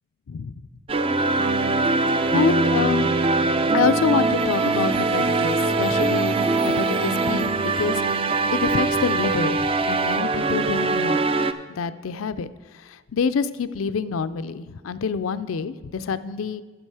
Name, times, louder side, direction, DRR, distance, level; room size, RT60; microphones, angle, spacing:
sound 1, 0.9-11.5, right 3 dB, 25° right, 0.4 m, -22 dB
voice 1, 2.3-3.1 3.7-11.3 11.8-12.5 12.7-16.6, left 5 dB, 85° left, 14 dB, 0.4 m, -27 dB
9.9 x 6.9 x 4.8 m, 1.5 s
head